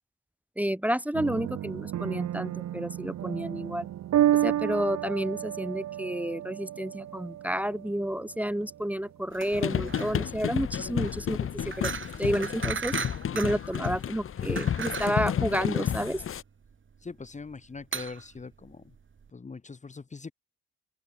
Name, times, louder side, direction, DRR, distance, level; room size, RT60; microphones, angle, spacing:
voice 1, 0.6-3.9 4.4-11.4 11.8-11.9 12.2-12.9 13.3-16.2, equal, 5° right, 1.5 m, -30 dB
sound 1, 1.1-10.2, right 12 dB, 60° right, 2.3 m, -31 dB
sound 2, 9.3-19.3, right 6 dB, 40° right, 6.5 m, -38 dB
sound 3, 9.5-16.4, left 9 dB, 45° left, 1.2 m, -31 dB
voice 2, 17.0-18.8 19.3-20.3, left 4 dB, 25° left, 1.5 m, -42 dB
open air
supercardioid pair, 70°, 31 cm